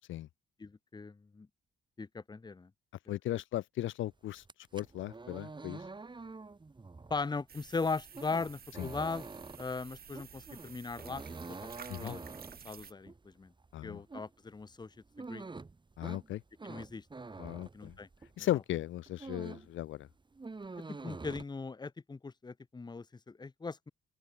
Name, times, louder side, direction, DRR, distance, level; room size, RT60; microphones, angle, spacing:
voice 1, 0.6-1.5 2.0-2.7 3.3-3.4 7.1-9.2 9.6-11.2 11.5-11.6 12.0-12.2 12.6-13.5 13.8-15.4 16.6-17.0 17.7-18.1 18.4-18.5 20.9-23.9, left 4 dB, 20° left, 1.2 m, -39 dB
voice 2, 3.1-4.4 4.7-5.8 8.8-8.9 11.9-12.2 13.7-14.0 16.0-16.4 17.4-17.9 18.4-20.1, left 13 dB, 80° left, 1.4 m, -36 dB
sound 1, 4.4-18.4 18.8-19.8 20.0-21.4, right 3 dB, 25° right, 3.4 m, -47 dB
sound 2, 7.5-12.9, right 8 dB, 50° right, 2.1 m, -52 dB
open air
cardioid pair, 90°, 20 cm